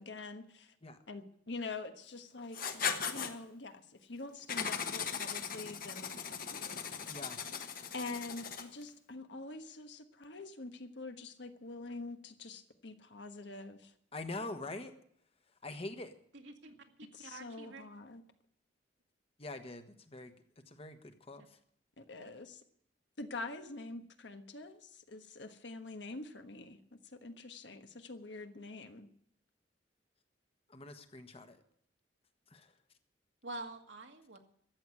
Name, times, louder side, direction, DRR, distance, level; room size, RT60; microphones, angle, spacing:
voice 1, 0.0-0.7 1.1-6.8 7.9-13.9 17.1-18.2 22.0-22.6 23.2-29.1, left 3 dB, 75° left, 7 dB, 1.3 m, -46 dB
Writing, 2.5-3.3 4.5-8.8, left 6 dB, 50° left, 1.3 m, -38 dB
voice 2, 7.1-7.4 14.1-14.9 15.6-16.1 19.4-20.3 20.7-21.4 30.7-31.6 32.5-32.7, left 2 dB, 35° left, 8 dB, 1.3 m, -44 dB
voice 3, 16.3-17.8 21.4-21.5 22.2-22.3 33.4-34.4, right 2 dB, 80° right, 4 dB, 2.0 m, -47 dB
13.5 x 8.2 x 9.8 m, 0.66 s
head